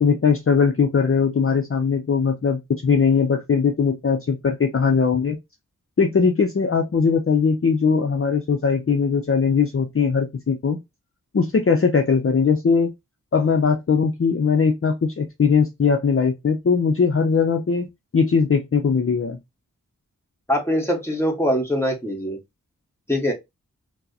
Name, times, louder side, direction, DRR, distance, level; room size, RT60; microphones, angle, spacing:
voice 1, 0.0-5.4 6.0-10.8 11.3-12.9 13.3-19.4, left 5 dB, 40° left, 0.5 m, -20 dB
voice 2, 20.5-22.4 23.1-23.3, equal, 5° left, 1.3 m, -22 dB
4.5 x 2.0 x 2.7 m
wide cardioid pair, 55°, 34 cm